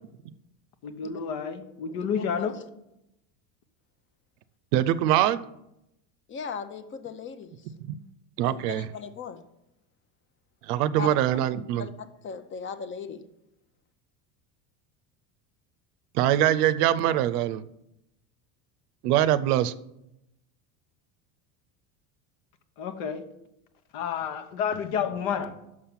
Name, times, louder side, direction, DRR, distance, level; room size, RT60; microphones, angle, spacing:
voice 1, 0.8-2.6 22.8-23.2 23.9-25.5, left 7 dB, 65° left, 8 dB, 1.2 m, -30 dB
voice 2, 1.9-2.5 6.3-7.6 8.4-9.4 11.0-11.1 11.8-13.2, left 6 dB, 25° left, 11 dB, 0.7 m, -38 dB
voice 3, 4.7-5.5 7.8-8.0 8.4-8.9 10.7-11.9 16.1-17.6 19.0-19.7, right 12 dB, 85° right, 16 dB, 0.6 m, -23 dB
6.4 x 5.7 x 7.3 m, 0.86 s
supercardioid pair, 120°, 45 cm